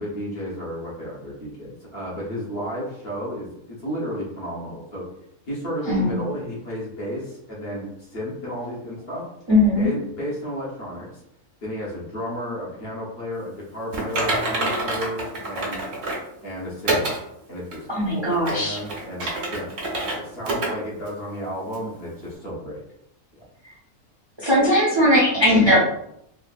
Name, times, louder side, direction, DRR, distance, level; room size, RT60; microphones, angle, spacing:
voice 1, 0.0-5.0 5.5-9.2 9.8-11.2 11.6-15.8 16.4-17.1 17.5-17.9 18.1-19.7 20.2-22.8, equal, 50° left, -6 dB, 1.2 m, -32 dB
voice 2, 5.9-6.2 9.5-9.9 17.9-18.8 19.2-19.3 23.6-23.7 24.4-25.8, left 1 dB, 30° right, -5 dB, 0.6 m, -19 dB
Typing, 13.9-16.3 16.9-17.2 17.7-17.8 18.3-20.2 20.4-20.7 21.1-21.2 21.7-21.8, right 2 dB, 80° right, 1.2 m, -26 dB
3.4 x 2.5 x 2.4 m, 0.76 s
omnidirectional pair, 1.4 m